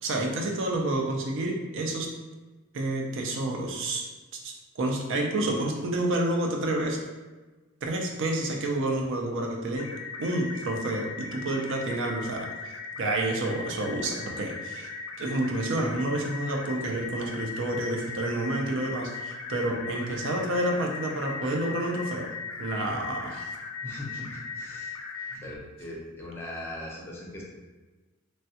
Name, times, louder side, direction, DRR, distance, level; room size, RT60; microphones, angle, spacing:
voice 1, 0.0-2.1 2.7-4.0 4.4-7.0 7.8-9.9 10.2-12.5 13.0-14.9 15.2-22.3 22.6-23.5 25.4-25.5, right 1 dB, 65° right, 1 dB, 0.5 m, -29 dB
sound 1, 9.8-25.4, left 4 dB, 70° left, 0.4 m, -38 dB
voice 2, 23.8-24.9 25.4-27.4, left 1 dB, 10° left, -3 dB, 0.6 m, -40 dB
3.1 x 2.3 x 2.8 m, 1.2 s
head